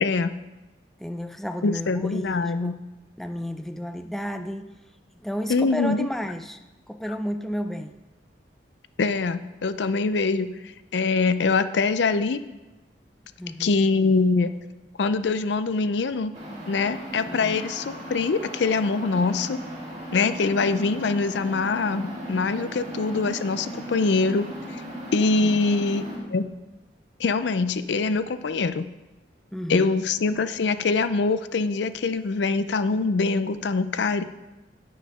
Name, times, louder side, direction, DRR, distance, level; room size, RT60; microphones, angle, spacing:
voice 1, 0.0-0.4 1.6-2.8 5.5-6.1 9.0-10.5 10.9-12.4 13.6-14.5 15.0-16.3 16.7-19.6 20.1-24.5 25.1-26.0 26.3-26.5 27.2-28.9 29.7-34.2, left 4 dB, 70° left, 12 dB, 0.5 m, -23 dB
voice 2, 1.0-2.7 3.2-4.7 5.1-6.6 6.9-8.0 13.4-13.8 17.3-17.6 25.4-25.6 29.5-30.0, equal, ahead, 7 dB, 0.4 m, -32 dB
sound 1, 16.3-26.2, equal, 35° right, 2.5 m, -37 dB
9.9 x 6.3 x 5.4 m, 1.1 s
head